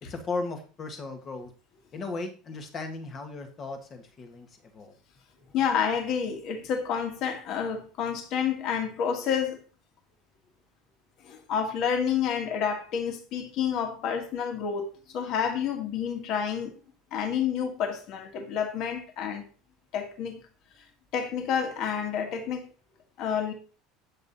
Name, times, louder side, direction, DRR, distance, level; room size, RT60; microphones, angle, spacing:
voice 1, 0.0-1.5 1.9-5.0, left 3 dB, 25° left, 1.6 m, -36 dB
voice 2, 5.5-9.6 11.2-16.8 17.1-19.5 19.9-20.4 21.1-22.7 23.2-23.5, left 7 dB, 40° left, 2.0 m, -29 dB
9.6 x 7.6 x 4.1 m
cardioid pair, 175°, 0 cm